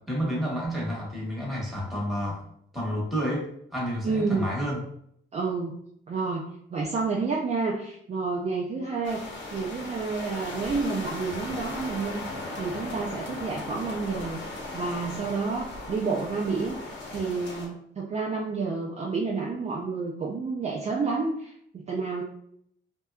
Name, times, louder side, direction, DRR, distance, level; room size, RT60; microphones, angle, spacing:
voice 1, 0.0-2.4 2.7-3.5 3.7-4.8, equal, ahead, -4 dB, 1.1 m, -30 dB
voice 2, 4.0-4.5 5.3-5.7 6.1-6.5 6.7-9.2 9.5-12.2 12.5-14.4 14.7-22.2, right 4 dB, 35° right, -3 dB, 0.4 m, -29 dB
sound 1, 9.0-17.7, left 2 dB, 70° left, 0.9 m, -37 dB
2.6 x 2.2 x 2.2 m, 0.69 s
cardioid pair, 90°, 20 cm